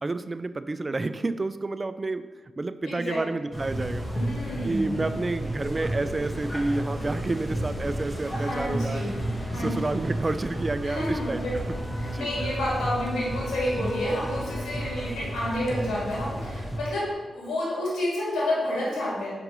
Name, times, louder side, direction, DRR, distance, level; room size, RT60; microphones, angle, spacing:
voice 1, 0.0-2.3 2.6-4.1 4.6-9.1 9.6-11.4 12.1-12.3, right 2 dB, 35° right, 12 dB, 0.3 m, -29 dB
voice 2, 2.8-3.2 4.1-5.0 8.2-9.8 10.8-11.5 12.0-19.3, left 1 dB, 85° left, -6 dB, 2.0 m, -30 dB
sound 1, 3.5-16.8, right 1 dB, 5° left, 1.5 m, -32 dB
sound 2, 11.5-17.1, right 3 dB, 70° right, 0.9 m, -47 dB
Bowed string instrument, 11.7-15.3, left 3 dB, 35° left, 0.6 m, -41 dB
6.7 x 5.2 x 3.1 m, 1.3 s
cardioid pair, 55°, 0 cm